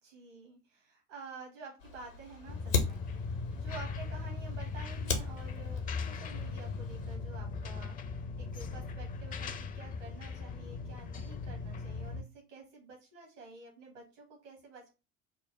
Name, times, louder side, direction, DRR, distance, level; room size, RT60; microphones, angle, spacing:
voice 1, 0.0-14.9, right 4 dB, 65° right, 1 dB, 1.2 m, -50 dB
Fire, 1.8-7.2, left 4 dB, 80° left, 0.9 m, -38 dB
sound 1, 2.5-12.2, left 4 dB, 25° left, 0.4 m, -39 dB
5.1 x 2.0 x 3.7 m, 0.30 s
figure-of-eight pair, 65°, 38 cm